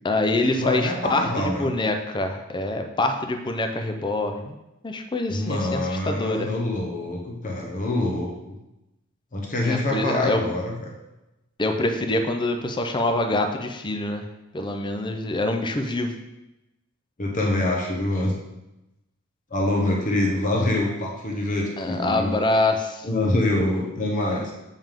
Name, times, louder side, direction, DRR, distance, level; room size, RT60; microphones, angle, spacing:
voice 1, 0.0-4.6 4.8-6.5 9.6-10.5 11.6-14.2 14.5-16.2 21.8-23.1, left 2 dB, 20° left, 5 dB, 0.5 m, -25 dB
voice 2, 0.6-1.7 5.3-8.6 9.3-10.9 17.2-18.3 19.5-22.3 23.0-24.5, left 1 dB, 35° left, -1 dB, 1.0 m, -25 dB
7.4 x 5.4 x 3.6 m, 0.95 s
head